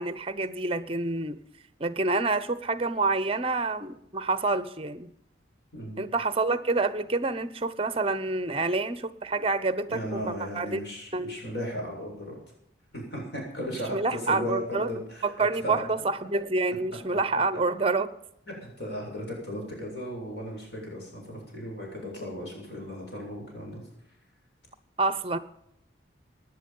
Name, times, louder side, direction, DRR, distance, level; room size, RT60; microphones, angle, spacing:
voice 1, 0.0-1.4 1.8-5.1 6.0-10.8 11.1-11.4 13.9-14.9 15.2-18.1 25.0-25.4, right 3 dB, 30° right, 15 dB, 0.8 m, -28 dB
voice 2, 5.7-6.0 9.9-12.4 12.9-15.8 17.1-17.4 18.5-23.8, equal, 60° left, -1 dB, 7.5 m, -36 dB
18.0 x 10.5 x 5.5 m, 0.77 s
head